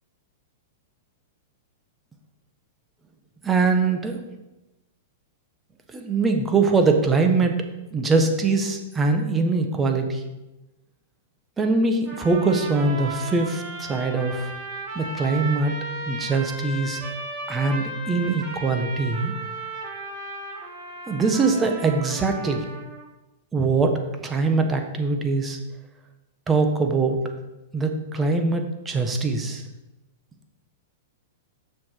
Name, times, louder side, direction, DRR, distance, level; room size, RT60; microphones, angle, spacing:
voice 1, 3.4-4.2 5.9-7.5 7.9-10.2 11.6-14.5 14.9-15.7 16.1-17.0 17.5-19.3 21.1-22.6 23.5-25.6 26.5-27.2 27.7-29.6, right 3 dB, 15° right, 5 dB, 1.3 m, -22 dB
sound 1, 12.0-23.1, right 2 dB, 35° right, 2.8 m, -35 dB
7.1 x 6.3 x 5.7 m, 1.0 s
hypercardioid pair, 115°, 0 cm